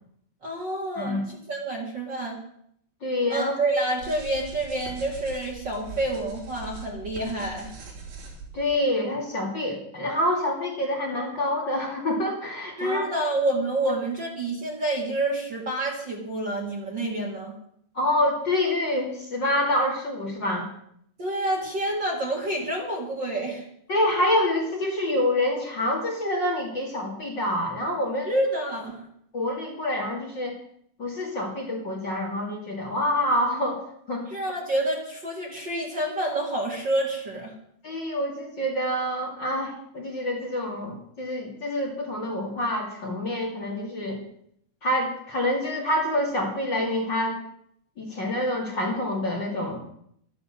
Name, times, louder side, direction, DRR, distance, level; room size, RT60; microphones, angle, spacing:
voice 1, 0.4-2.4 3.3-7.7 12.8-17.5 21.2-23.6 28.2-29.0 34.3-37.5, right 1 dB, 45° right, -2 dB, 1.5 m, -28 dB
voice 2, 1.0-1.3 3.0-3.5 8.5-13.0 17.9-20.7 23.9-28.3 29.3-30.6 31.0-34.3 37.8-44.2 44.8-47.4 48.0-49.8, left 1 dB, 30° left, -2 dB, 2.3 m, -27 dB
sound 1, 4.0-8.8, right 5 dB, 80° right, 6.3 m, -41 dB
12.0 x 11.0 x 7.4 m, 0.69 s
omnidirectional pair, 5.4 m